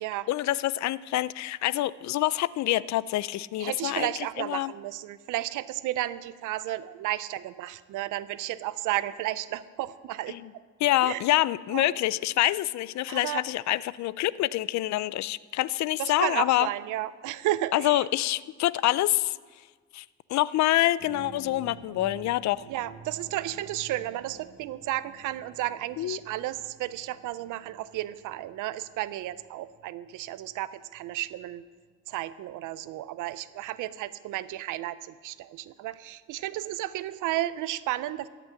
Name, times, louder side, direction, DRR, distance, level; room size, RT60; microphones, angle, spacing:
voice 1, 0.3-4.7 10.3-10.5 10.8-16.7 17.7-19.4 19.9-22.7 26.0-26.2, left 15 dB, 65° left, 19 dB, 0.4 m, -26 dB
voice 2, 3.6-10.4 11.0-11.2 11.7-11.9 13.1-13.4 16.0-18.0 22.7-31.6 32.1-38.3, right 14 dB, 90° right, 16 dB, 0.6 m, -33 dB
sound 1, 21.0-31.5 32.1-32.2, right 5 dB, 55° right, 1.3 m, -50 dB
13.5 x 6.0 x 9.1 m, 1.5 s
cardioid pair, 90°, 30 cm